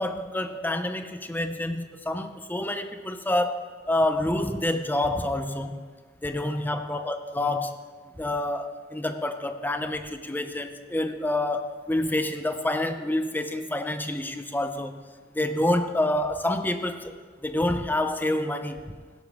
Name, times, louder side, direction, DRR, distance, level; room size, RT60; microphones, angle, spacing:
voice 1, 0.0-5.9 6.2-7.8 8.2-15.0 15.3-18.9, left 1 dB, 10° left, 8 dB, 0.6 m, -28 dB
16.0 x 12.5 x 3.6 m, 1.5 s
head